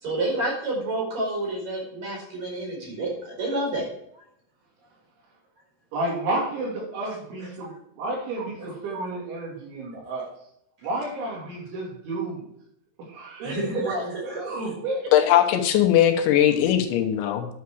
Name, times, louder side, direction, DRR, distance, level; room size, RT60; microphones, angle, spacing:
voice 1, 0.0-3.1 3.4-3.8 13.4-13.9, right 2 dB, 40° right, -2 dB, 5.5 m, -28 dB
voice 2, 5.9-10.3 10.8-12.5 13.0-15.1, right 2 dB, 80° right, -2 dB, 5.1 m, -31 dB
voice 3, 15.1-17.5, left 11 dB, 80° left, 5 dB, 3.2 m, -19 dB
10.5 x 7.4 x 4.7 m, 0.73 s
omnidirectional pair, 5.3 m